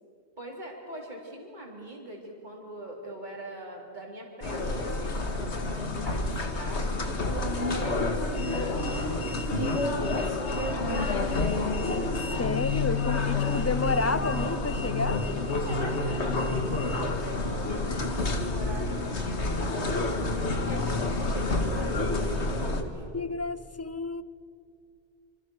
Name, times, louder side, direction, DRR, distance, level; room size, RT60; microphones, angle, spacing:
voice 1, 0.4-11.5 13.6-13.7 15.6-23.1, right 1 dB, 45° right, -1 dB, 4.1 m, -42 dB
sound 1, 4.4-22.8, left 2 dB, 80° left, 2.2 m, -29 dB
voice 2, 12.4-15.2 23.1-24.2, left 3 dB, 20° left, 16 dB, 0.4 m, -30 dB
27.0 x 26.0 x 6.5 m, 2.3 s
omnidirectional pair, 1.1 m